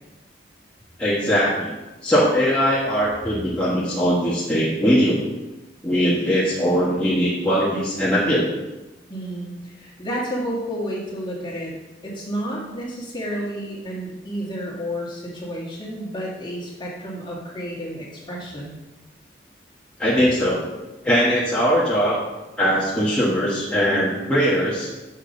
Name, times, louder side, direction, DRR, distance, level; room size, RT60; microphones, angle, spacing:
voice 1, 1.0-1.7 2.0-5.2 5.8-8.5 20.0-22.2 22.6-24.9, equal, 5° left, -9 dB, 1.3 m, -20 dB
voice 2, 9.1-11.7 12.0-18.7, equal, 25° left, -4 dB, 1.8 m, -31 dB
6.8 x 6.4 x 5.1 m, 1.0 s
head